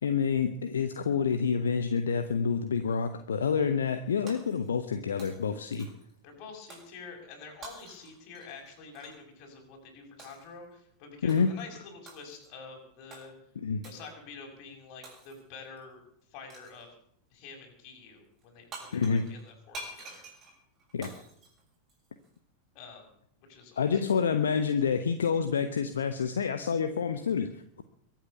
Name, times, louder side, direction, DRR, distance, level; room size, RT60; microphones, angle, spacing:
voice 1, 0.0-5.9 11.2-11.5 13.6-13.8 18.9-19.3 20.9-21.1 23.8-27.8, left 6 dB, 65° left, 9 dB, 1.1 m, -28 dB
Shatter, 4.3-4.9 5.2-6.1 6.7-7.0 7.6-9.2 10.2-10.5 11.3-11.6 12.1-12.5 13.1-13.3 13.8-14.1 15.0-15.6 16.5-16.9 18.4-18.5 18.7-22.3, right 2 dB, 25° right, 6.9 m, -48 dB
voice 2, 6.2-13.3 13.8-16.0 16.3-16.9 17.3-20.3 22.7-23.1 23.5-24.0, left 4 dB, 40° left, 2 dB, 6.4 m, -47 dB
23.0 x 9.0 x 7.0 m, 0.69 s
figure-of-eight pair, 90°, 0 cm